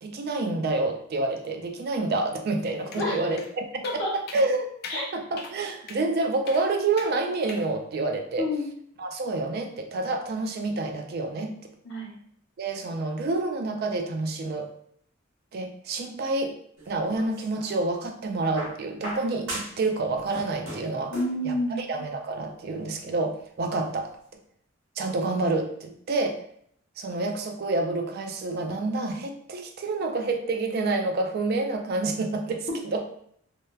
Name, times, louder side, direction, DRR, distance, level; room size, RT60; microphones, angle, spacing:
voice 1, 0.0-4.7 5.1-8.5 9.0-11.6 12.6-14.7 15.5-16.5 16.9-21.1 21.4-24.2 25.0-26.4 27.0-33.0, right 3 dB, 50° right, 4 dB, 0.3 m, -28 dB
sound 1, 2.9-3.1 3.4-3.5 3.8-4.0 4.3-4.5 4.8-5.0 5.4-5.5 5.9-6.0 6.5-6.6 7.0-7.1 7.5-7.7, left 4 dB, 50° left, 0.3 m, -40 dB
voice 2, 3.0-3.4 3.8-4.1 4.9-5.0 8.4-8.6 11.8-12.2 21.1-21.8, left 1 dB, 65° left, -2 dB, 0.8 m, -29 dB
sound 2, 16.8-17.8 18.6-19.9 20.2-21.4 22.5-22.6, equal, 70° right, 0.9 m, -38 dB
2.8 x 2.1 x 2.2 m, 0.66 s
head